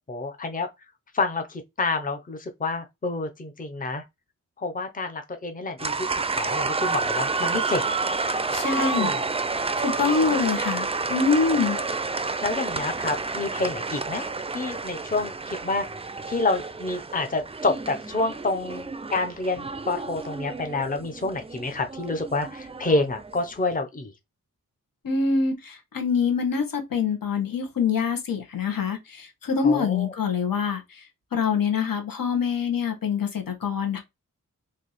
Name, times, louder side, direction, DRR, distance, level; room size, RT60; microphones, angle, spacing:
voice 1, 0.1-0.7 1.1-4.0 4.6-6.1 6.3-7.8 8.7-9.2 10.2-10.4 11.8-11.9 12.4-15.9 16.3-24.1 29.6-30.1, left 3 dB, 25° left, 0.7 m, -28 dB
sound 1, 5.8-23.5, right 4 dB, 20° right, 0.4 m, -30 dB
voice 2, 8.5-9.1 9.8-11.8 25.0-31.0 31.3-34.0, left 5 dB, 80° left, 1.2 m, -25 dB
3.3 x 2.7 x 4.1 m
wide cardioid pair, 90°, 34 cm